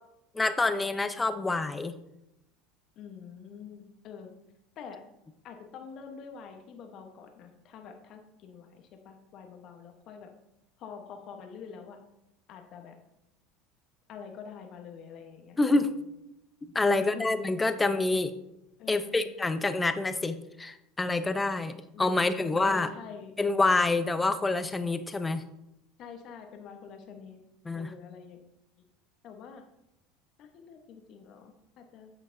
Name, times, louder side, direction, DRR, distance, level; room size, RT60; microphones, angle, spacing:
voice 1, 0.3-2.0 15.6-15.9 16.7-18.3 18.9-22.9 23.4-25.4 27.7-27.9, left 3 dB, 15° left, 11 dB, 0.6 m, -27 dB
voice 2, 3.0-4.3 4.8-5.0 5.4-10.3 10.8-12.0 12.5-13.0 14.1-16.0 16.9-17.6 18.8-19.3 21.9-22.2 22.6-23.3 26.0-27.4 27.7-28.4 29.2-29.6 30.4-32.1, left 6 dB, 55° left, 4 dB, 1.0 m, -46 dB
8.8 x 6.2 x 2.6 m, 0.85 s
hypercardioid pair, 80°, 0 cm